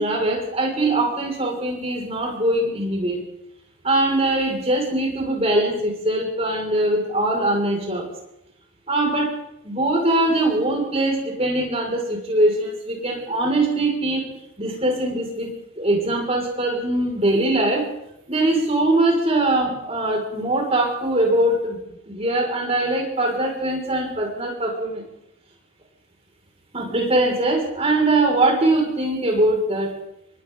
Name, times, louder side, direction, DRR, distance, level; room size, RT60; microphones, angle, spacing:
voice 1, 0.0-3.2 3.8-8.1 8.9-9.3 9.6-14.3 14.6-17.9 18.3-21.8 22.0-25.0 26.7-30.0, right 1 dB, 30° right, 0 dB, 6.3 m, -22 dB
28.5 x 23.0 x 4.1 m, 0.81 s
head